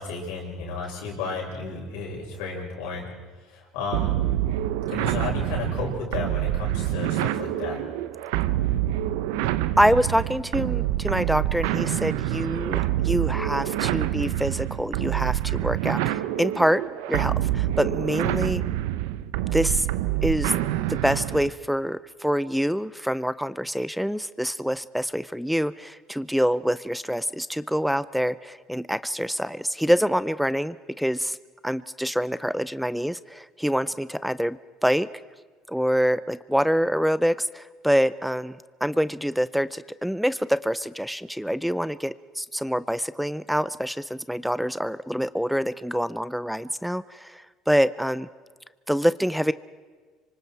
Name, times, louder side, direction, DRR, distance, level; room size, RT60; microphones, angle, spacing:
voice 1, 0.0-3.1 3.5-4.2 4.9-7.8, left 4 dB, 90° left, -1 dB, 6.8 m, -33 dB
sound 1, 3.9-21.5, right 14 dB, 90° right, 0.8 m, -26 dB
voice 2, 9.8-16.8 17.1-18.6 19.5-19.9 20.2-20.5 20.9-31.4 31.6-35.1 35.7-48.3 48.9-49.5, equal, ahead, 16 dB, 0.5 m, -26 dB
27.0 x 24.5 x 4.6 m, 1.5 s
supercardioid pair, 105°, 0 cm